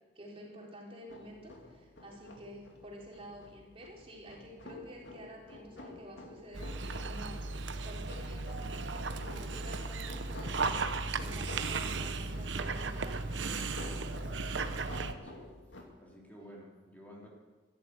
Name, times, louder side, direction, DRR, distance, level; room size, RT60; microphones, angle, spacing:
voice 1, 0.2-10.7 11.2-13.5 16.4-16.6, equal, 30° right, -2 dB, 3.5 m, -50 dB
sound 1, 1.1-15.8, left 1 dB, 90° left, 2.4 m, -50 dB
Dog, 6.5-15.1, right 3 dB, 80° right, 0.9 m, -36 dB
voice 2, 14.0-15.5 16.0-17.3, equal, 10° left, -4 dB, 3.2 m, -53 dB
15.0 x 11.5 x 8.2 m, 1.3 s
head